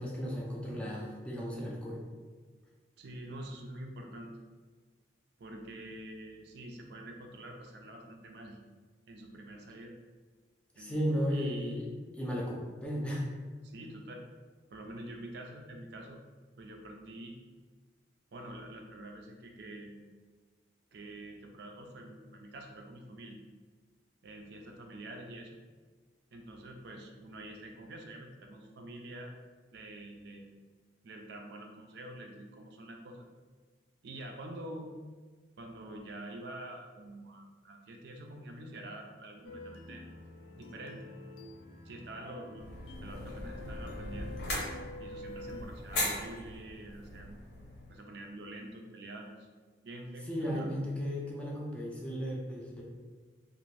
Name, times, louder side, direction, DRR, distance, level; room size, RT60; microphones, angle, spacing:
voice 1, 0.0-2.0 10.8-11.9 12.1-13.2 50.3-52.8, equal, 5° left, -4 dB, 0.4 m, -35 dB
voice 2, 3.0-4.4 5.4-8.6 9.1-9.9 10.8-11.8 13.6-14.2 14.7-16.2 16.6-17.4 18.3-20.0 20.9-23.4 24.2-25.6 26.3-29.3 29.7-30.5 31.0-33.3 34.0-34.9 35.6-40.1 40.6-41.1 41.8-44.3 45.0-47.4 47.9-49.5 49.8-50.7, right 1 dB, 60° right, 2 dB, 0.4 m, -46 dB
sound 1, 39.4-45.6, left 3 dB, 85° left, 0.3 m, -48 dB
sound 2, 42.6-48.0, left 1 dB, 60° left, 0.8 m, -39 dB
2.5 x 2.5 x 3.2 m, 1.5 s
head